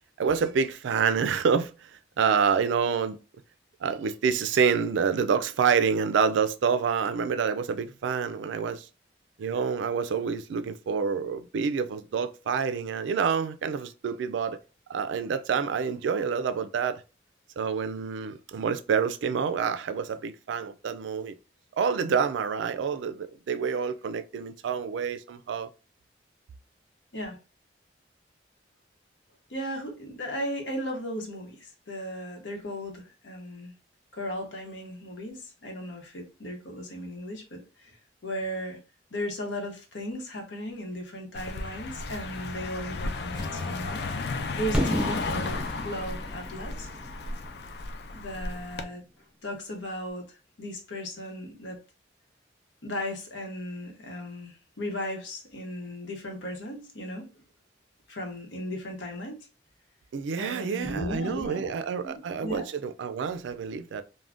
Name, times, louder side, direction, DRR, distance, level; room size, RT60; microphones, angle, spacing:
voice 1, 0.2-1.9 2.2-3.2 3.8-8.9 9.4-14.6 14.9-17.0 17.6-21.3 21.8-25.7 60.1-64.0, right 6 dB, 90° right, 0.3 m, -27 dB
voice 2, 29.5-33.7 34.1-38.0 38.2-38.8 39.1-44.0 44.3-46.9 48.1-49.0 49.4-51.8 52.8-57.4 58.1-59.4 60.4-62.6, equal, 90° left, 0.9 m, -36 dB
Car passing by, 41.3-48.8, left 3 dB, 60° left, 0.3 m, -34 dB
Acoustic guitar / Strum, 43.3-47.8, left 2 dB, 20° left, 0.9 m, -47 dB
Fireworks, 44.7-48.6, equal, 5° right, 0.4 m, -33 dB
2.5 x 2.1 x 3.3 m
head